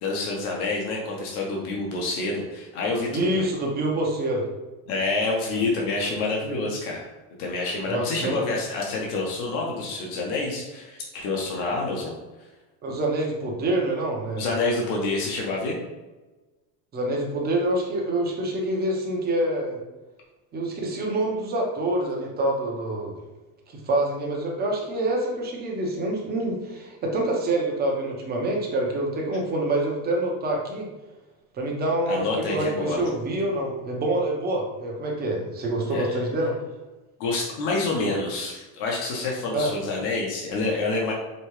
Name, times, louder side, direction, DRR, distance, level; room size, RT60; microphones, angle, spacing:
voice 1, 0.0-3.5 4.9-7.0 7.4-12.1 14.4-15.7 32.1-33.0 35.9-36.0 37.2-41.1, left 3 dB, 75° left, -2 dB, 1.1 m, -27 dB
voice 2, 3.1-4.5 7.9-8.4 12.8-14.4 16.9-19.8 20.5-23.2 23.8-30.9 31.6-36.6 39.5-39.7, right 1 dB, 20° right, -1 dB, 0.8 m, -26 dB
5.3 x 2.3 x 3.1 m, 1.2 s
supercardioid pair, 150°, 45 cm